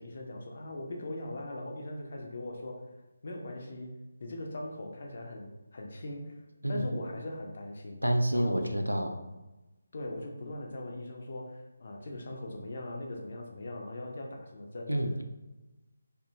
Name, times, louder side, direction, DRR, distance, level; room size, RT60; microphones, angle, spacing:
voice 1, 0.0-2.8 3.2-3.9 4.2-6.4 6.7-8.0 8.3-8.7 9.9-14.9, left 1 dB, 45° left, 1 dB, 0.5 m, -40 dB
voice 2, 8.0-9.2 14.9-15.2, right 1 dB, 90° right, 5 dB, 0.4 m, -28 dB
2.7 x 2.2 x 2.6 m, 1.1 s
figure-of-eight pair, 150°, 0 cm